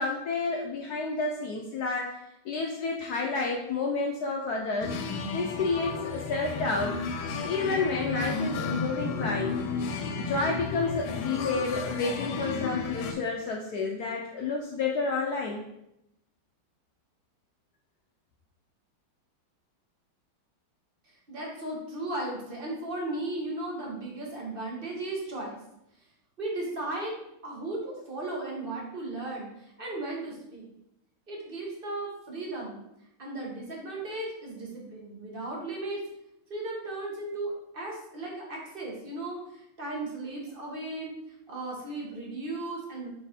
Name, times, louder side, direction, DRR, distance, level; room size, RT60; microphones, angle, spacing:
voice 1, 0.0-2.1 2.4-4.9 5.3-7.0 7.4-9.6 10.1-15.6, left 3 dB, 70° left, 0 dB, 0.9 m, -30 dB
sound 1, 4.8-13.1, left 4 dB, 90° left, 1.5 m, -33 dB
voice 2, 21.0-25.6 26.4-27.2 27.4-30.7 31.3-32.8 33.2-36.0 36.5-43.1, right 2 dB, 30° right, -2 dB, 1.2 m, -36 dB
5.4 x 4.0 x 4.3 m, 0.83 s
omnidirectional pair, 2.3 m